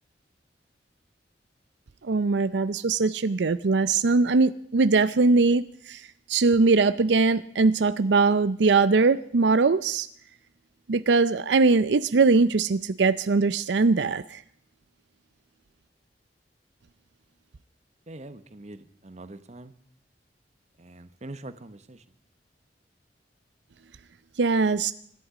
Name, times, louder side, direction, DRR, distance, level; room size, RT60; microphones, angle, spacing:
voice 1, 2.1-5.6 5.9-6.0 6.3-10.1 10.9-14.4 24.4-24.9, right 4 dB, 85° right, 14 dB, 0.6 m, -21 dB
voice 2, 18.1-19.7 20.8-22.0, right 2 dB, 40° right, 12 dB, 1.1 m, -43 dB
25.5 x 11.0 x 5.0 m, 0.64 s
head